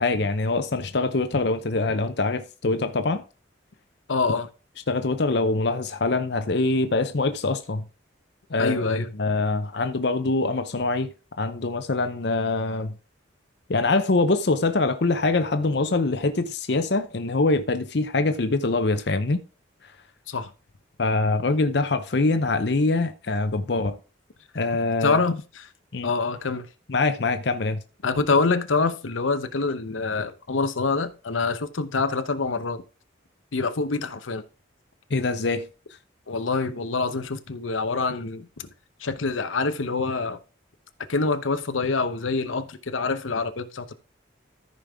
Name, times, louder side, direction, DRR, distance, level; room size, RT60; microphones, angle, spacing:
voice 1, 0.0-3.2 4.9-7.8 8.5-12.9 13.7-19.4 21.0-23.9 24.5-25.2 25.9-26.1 26.9-27.8 35.1-35.7, left 3 dB, 55° left, 0.7 m, -24 dB
voice 2, 4.1-4.5 8.6-9.1 20.3-20.5 25.0-25.7 26.0-26.7 28.0-32.8 33.5-34.4 36.3-38.7 39.0-40.4 41.1-43.9, left 4 dB, 85° left, 0.9 m, -26 dB
14.0 x 5.3 x 3.5 m
head